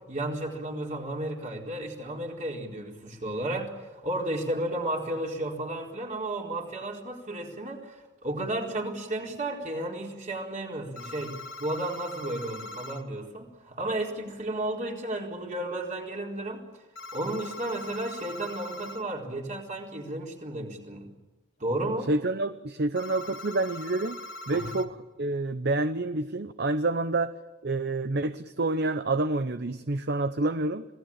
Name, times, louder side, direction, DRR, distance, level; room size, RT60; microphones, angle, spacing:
voice 1, 0.1-16.7 17.1-21.1 21.6-22.1 24.5-24.7, right 1 dB, 40° right, 1 dB, 4.4 m, -33 dB
sound 1, 11.0-13.0 17.0-19.0 23.0-24.9, left 2 dB, 65° left, 2.0 m, -41 dB
voice 2, 22.1-24.2 24.5-27.3 27.6-30.8, right 2 dB, 55° right, 11 dB, 0.8 m, -28 dB
27.0 x 19.0 x 8.9 m, 1.2 s
head